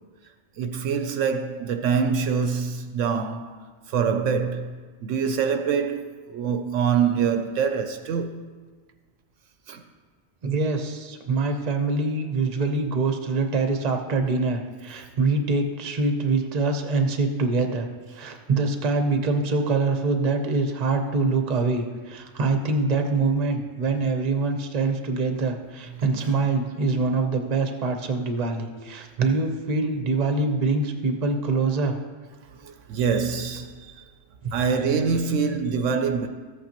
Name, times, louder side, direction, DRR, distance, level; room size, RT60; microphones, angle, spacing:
voice 1, 0.6-8.4 9.7-9.8 25.9-26.6 27.1-27.2 32.5-34.1 34.5-36.3, right 6 dB, 75° right, 0.9 m, -25 dB
voice 2, 10.4-17.9 18.1-32.0 34.4-34.5, right 3 dB, 35° right, 0.7 m, -24 dB
14.0 x 8.3 x 3.0 m
omnidirectional pair, 1.4 m